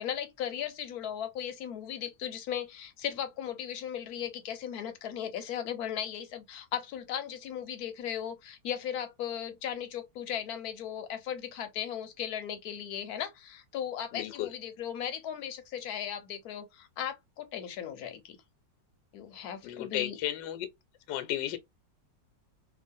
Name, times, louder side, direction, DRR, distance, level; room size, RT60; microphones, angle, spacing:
voice 1, 0.0-18.4 19.1-20.2, left 9 dB, 65° left, 1.1 m, -37 dB
voice 2, 14.1-14.5 19.6-20.7 21.1-21.6, left 12 dB, 80° left, 1.3 m, -33 dB
3.0 x 2.5 x 2.5 m
omnidirectional pair, 1.9 m